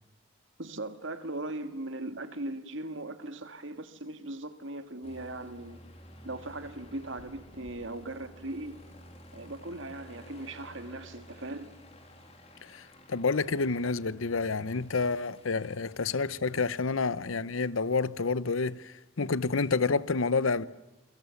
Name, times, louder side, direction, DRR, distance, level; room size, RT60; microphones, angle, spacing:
voice 1, 0.6-5.8 6.2-8.8 9.3-11.7, right 2 dB, 70° right, 1.8 m, -39 dB
Aircraft, 5.0-16.5, equal, 30° left, 3.2 m, -52 dB
voice 2, 12.6-20.6, left 4 dB, 85° left, 0.8 m, -29 dB
28.0 x 23.5 x 7.2 m
head